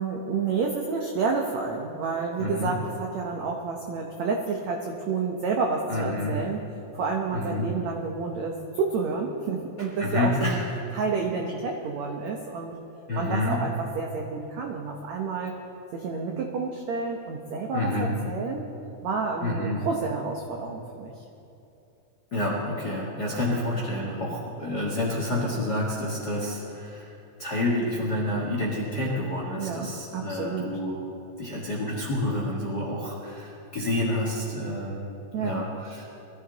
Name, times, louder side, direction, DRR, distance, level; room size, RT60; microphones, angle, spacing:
voice 1, 0.0-6.6 6.9-10.6 10.9-12.8 13.2-15.5 15.9-18.7 19.0-21.1 29.6-30.7 35.3-35.7, right 4 dB, 80° right, 1 dB, 1.6 m, -29 dB
voice 2, 2.4-2.7 5.9-6.4 7.3-7.7 10.0-10.6 13.1-13.6 17.7-18.2 19.4-19.9 22.3-27.1 27.4-31.0 31.4-36.1, left 1 dB, 45° left, -4 dB, 1.4 m, -29 dB
22.0 x 14.0 x 4.0 m, 2.7 s
omnidirectional pair, 4.6 m